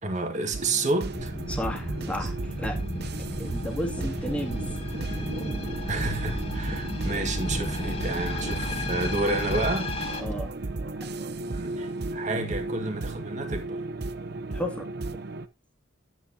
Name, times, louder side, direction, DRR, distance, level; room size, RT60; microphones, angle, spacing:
voice 1, 0.0-1.3 2.2-2.3 5.9-9.9 11.5-13.8, right 2 dB, 35° right, 1.8 m, -30 dB
sound 1, 0.5-15.5, right 2 dB, 50° right, 0.7 m, -35 dB
sound 2, 1.1-10.2, left 1 dB, 30° left, 1.8 m, -33 dB
voice 2, 1.5-2.8 3.4-4.6 10.2-10.5 11.0-11.1 14.5-14.9, equal, 5° left, 2.2 m, -33 dB
11.0 x 9.0 x 2.8 m
head